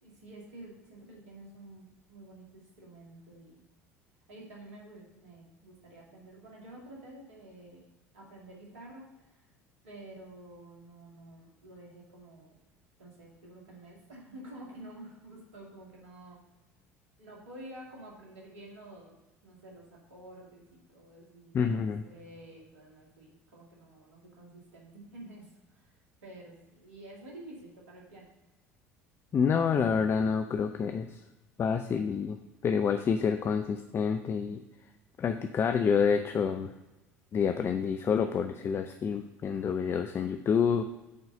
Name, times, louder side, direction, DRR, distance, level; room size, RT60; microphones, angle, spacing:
voice 1, 0.0-3.6 4.3-7.8 8.1-9.5 9.8-12.6 13.0-16.4 17.2-19.2 19.4-25.9 26.2-28.3, right 1 dB, 70° right, -3 dB, 2.3 m, -50 dB
voice 2, 21.5-22.0 29.3-31.2 31.6-32.4 32.6-34.6 35.2-36.7 37.3-40.8, left 6 dB, 30° left, 7 dB, 0.5 m, -28 dB
8.8 x 4.0 x 5.4 m, 1.1 s
figure-of-eight pair, 65°, 8 cm